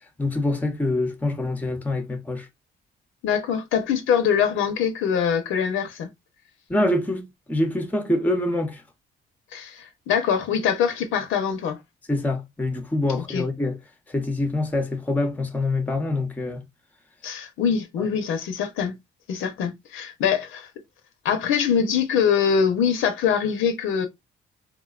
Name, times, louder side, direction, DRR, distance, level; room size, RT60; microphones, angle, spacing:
voice 1, 0.2-2.5 6.7-8.8 12.1-13.8 14.1-16.6 18.0-18.1, left 2 dB, 10° left, 0.7 m, -25 dB
voice 2, 3.2-6.1 9.5-11.8 13.2-13.5 17.2-19.0 19.3-20.7 21.2-24.1, left 7 dB, 85° left, 0.7 m, -23 dB
3.5 x 2.2 x 2.3 m
cardioid pair, 90°, 20 cm